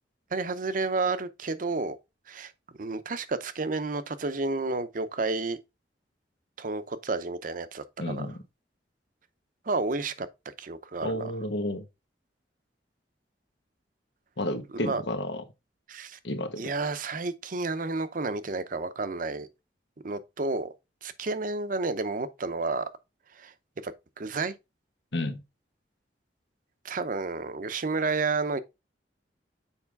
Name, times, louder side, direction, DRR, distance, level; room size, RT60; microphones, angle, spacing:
voice 1, 0.3-2.0 2.3-2.5 2.8-5.6 6.6-8.3 9.7-10.3 10.6-11.3 14.7-15.0 15.9-16.2 16.6-19.5 20.0-20.7 21.0-22.9 23.4-23.5 23.8-24.5 26.8-28.6, right 3 dB, 50° right, 0.7 m, -31 dB
voice 2, 8.0-8.4 11.0-11.8 14.4-15.4 16.2-16.7 25.1-25.4, left 1 dB, 80° left, 1.2 m, -31 dB
7.2 x 4.9 x 3.4 m
head